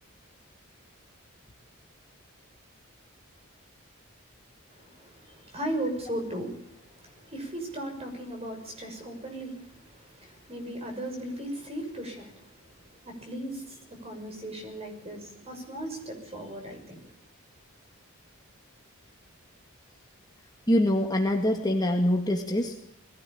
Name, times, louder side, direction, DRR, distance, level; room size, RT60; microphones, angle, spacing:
voice 1, 4.7-17.1, right 1 dB, 30° right, 3 dB, 6.4 m, -37 dB
voice 2, 20.7-22.8, left 1 dB, 20° left, 3 dB, 1.9 m, -24 dB
21.0 x 16.5 x 8.7 m, 0.74 s
head